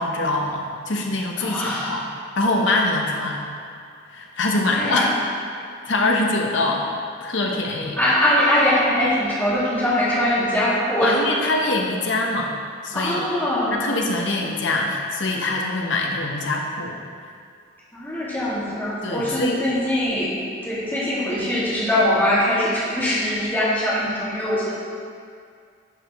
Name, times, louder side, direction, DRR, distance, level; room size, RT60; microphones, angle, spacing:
voice 1, 0.0-2.0 2.4-3.4 4.1-5.1 5.9-6.9 7.2-8.0 11.0-12.5 12.8-13.3 13.7-17.0 19.0-19.6, left 2 dB, 65° left, 0 dB, 0.9 m, -23 dB
voice 2, 1.4-1.9 4.7-5.1 8.0-11.2 12.9-13.8 17.9-24.7, left 1 dB, 10° left, -10 dB, 2.0 m, -22 dB
10.5 x 4.8 x 3.5 m, 2.3 s
head